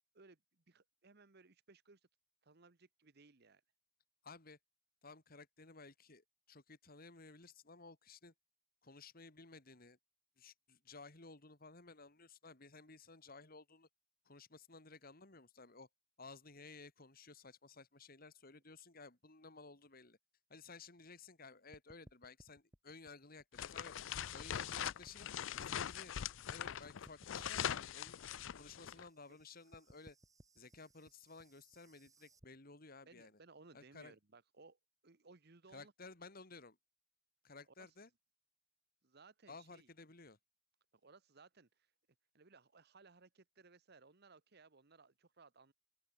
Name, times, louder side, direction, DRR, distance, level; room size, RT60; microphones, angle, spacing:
voice 1, 0.1-2.0 2.4-3.6 29.3-29.4 33.1-35.9 37.8-37.9 39.0-39.9 41.0-41.9 42.3-45.7, right 3 dB, 55° right, 1.2 m, -63 dB
voice 2, 4.2-4.6 5.0-8.3 8.8-10.0 10.4-13.9 14.2-15.9 16.2-20.2 20.5-23.9 24.3-26.2 26.5-28.2 28.5-30.2 30.5-33.4 33.7-34.2 35.7-36.8 37.4-38.1 39.5-40.4, left 3 dB, 45° left, 2.7 m, -56 dB
sound 1, 21.7-24.1 24.4-26.8 27.0-32.5, equal, 15° right, 3.8 m, -63 dB
sound 2, 23.5-29.0, left 9 dB, 70° left, 0.5 m, -42 dB
open air
head